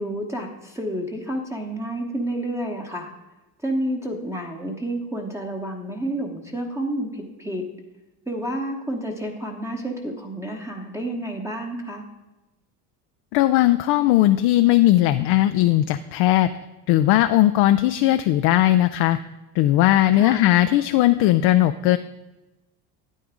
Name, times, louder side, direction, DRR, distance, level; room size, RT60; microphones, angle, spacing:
voice 1, 0.0-3.1 3.6-7.6 8.3-12.0 20.1-20.5, right 1 dB, 5° right, -1 dB, 1.0 m, -30 dB
voice 2, 13.3-16.5 16.9-19.2 19.6-22.0, left 14 dB, 55° left, 8 dB, 0.5 m, -18 dB
9.3 x 8.6 x 3.7 m, 1.0 s
supercardioid pair, 100°, 49 cm